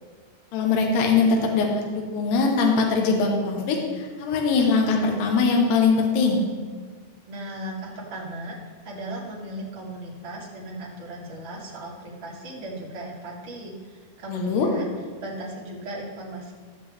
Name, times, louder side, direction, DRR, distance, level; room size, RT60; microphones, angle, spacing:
voice 1, 0.5-6.4 14.3-14.7, left 4 dB, 80° left, 1 dB, 3.1 m, -22 dB
voice 2, 7.3-8.6 8.8-14.8 15.2-16.5, right 1 dB, 50° right, -5 dB, 1.6 m, -36 dB
14.5 x 6.7 x 3.5 m, 1.5 s
omnidirectional pair, 4.8 m